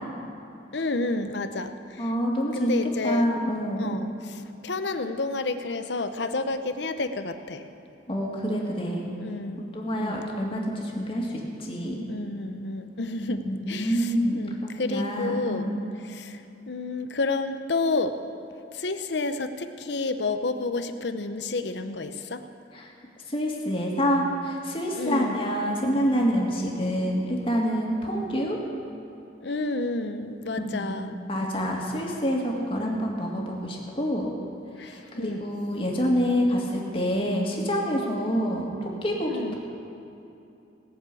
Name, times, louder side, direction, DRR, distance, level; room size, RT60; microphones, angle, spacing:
voice 1, 0.7-2.1 2.5-3.3 3.8-7.6 9.2-9.6 10.0-10.2 12.1-15.6 16.1-16.4 16.7-18.1 18.7-22.4 24.9-25.4 29.4-31.2 32.7-33.1 34.8-35.4 39.3-39.5, left 3 dB, 75° left, 9 dB, 0.8 m, -30 dB
voice 2, 2.0-2.7 3.0-4.0 8.1-9.1 9.6-11.3 11.6-12.1 13.3-15.8 22.7-22.9 23.3-28.6 30.6-34.3 34.8-39.3, equal, 30° left, -2 dB, 2.2 m, -27 dB
18.0 x 7.3 x 8.5 m, 2.8 s
head